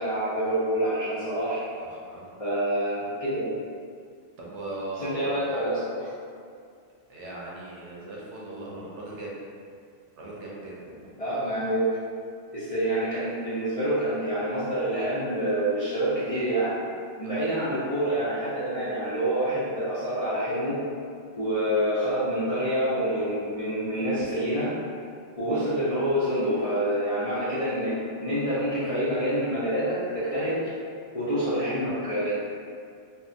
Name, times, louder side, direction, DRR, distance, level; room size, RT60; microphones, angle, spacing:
voice 1, 0.0-1.6 2.4-3.5 5.0-6.1 11.2-12.0 12.5-16.8 17.2-20.8 21.3-24.8 25.4-30.6 31.1-32.4, right 1 dB, 45° left, -12 dB, 0.5 m, -27 dB
voice 2, 1.7-2.3 4.4-5.5 7.1-9.3 10.2-11.0 17.2-17.5 21.7-21.9, right 1 dB, 75° right, -5 dB, 0.9 m, -39 dB
2.7 x 2.3 x 2.5 m, 2.3 s
omnidirectional pair, 1.2 m